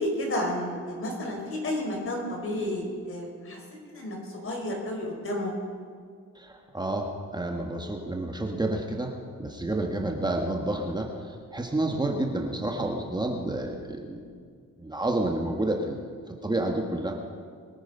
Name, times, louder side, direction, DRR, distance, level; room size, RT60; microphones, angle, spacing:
voice 1, 0.0-3.6 3.9-5.5, left 1 dB, 45° left, 1 dB, 4.6 m, -31 dB
voice 2, 6.3-9.1 9.4-14.2 14.8-16.1 16.4-17.2, right 1 dB, 15° right, 1 dB, 1.5 m, -29 dB
23.5 x 9.1 x 5.7 m, 2.1 s
cardioid pair, 90°, 30 cm